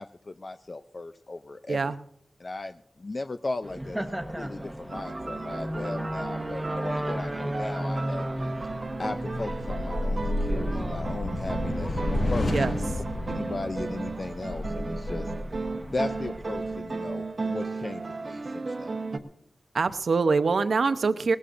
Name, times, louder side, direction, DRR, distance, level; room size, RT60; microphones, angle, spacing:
voice 1, 0.0-1.9 2.4-8.3 9.0-12.0 12.3-12.6 13.3-15.3 15.9-19.0, left 2 dB, 45° left, 8 dB, 0.4 m, -36 dB
sound 1, 3.6-16.8, right 1 dB, 10° right, 1.1 m, -36 dB
Silent Movie - Sam Fox - Hurry Music, 4.9-19.2, right 3 dB, 55° right, 1.0 m, -35 dB
sound 2, 8.6-16.8, left 1 dB, 65° left, 1.5 m, -32 dB
voice 2, 19.7-21.4, right 4 dB, 85° right, 11 dB, 0.7 m, -24 dB
20.5 x 18.0 x 2.5 m, 0.68 s
wide cardioid pair, 105°, 0 cm